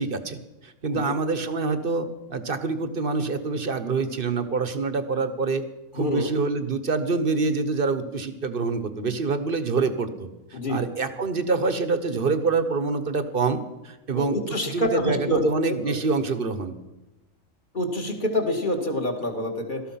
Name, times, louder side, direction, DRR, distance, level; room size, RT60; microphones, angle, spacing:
voice 1, 0.0-5.6 5.9-13.6 13.8-16.7, right 4 dB, 40° right, 11 dB, 1.3 m, -26 dB
voice 2, 5.9-6.3 10.5-10.9 14.1-15.4 15.9-16.0 17.7-19.8, equal, 35° left, 2 dB, 2.2 m, -26 dB
18.0 x 13.5 x 5.8 m, 1.0 s
omnidirectional pair, 1.5 m